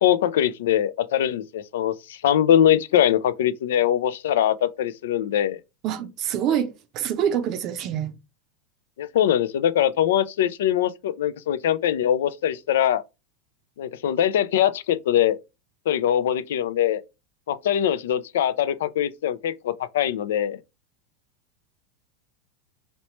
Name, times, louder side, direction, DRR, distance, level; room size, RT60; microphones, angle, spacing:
voice 1, 0.0-5.6 9.0-13.0 13.8-15.4 15.9-17.0 17.5-20.6, left 10 dB, 75° left, 0.3 m, -22 dB
voice 2, 5.8-8.2, right 9 dB, 50° right, 0.5 m, -26 dB
3.1 x 3.0 x 2.9 m
hypercardioid pair, 90°, 0 cm